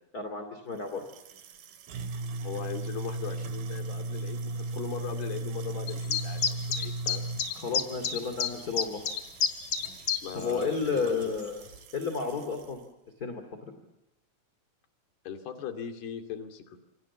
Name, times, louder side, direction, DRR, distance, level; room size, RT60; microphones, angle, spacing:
voice 1, 0.1-1.0 7.6-9.0 10.3-11.6 11.9-12.8 13.2-13.7, left 5 dB, 25° left, 7 dB, 2.5 m, -32 dB
sound 1, 0.8-12.8, right 2 dB, 65° right, 3.6 m, -38 dB
voice 2, 2.4-7.3 10.2-11.3 15.3-16.8, left 8 dB, 75° left, 5 dB, 4.6 m, -39 dB
sound 2, 5.9-10.5 10.7-10.8 11.4-11.5, left 7 dB, 45° left, 3.4 m, -29 dB
28.0 x 24.5 x 7.2 m, 0.98 s
omnidirectional pair, 4.6 m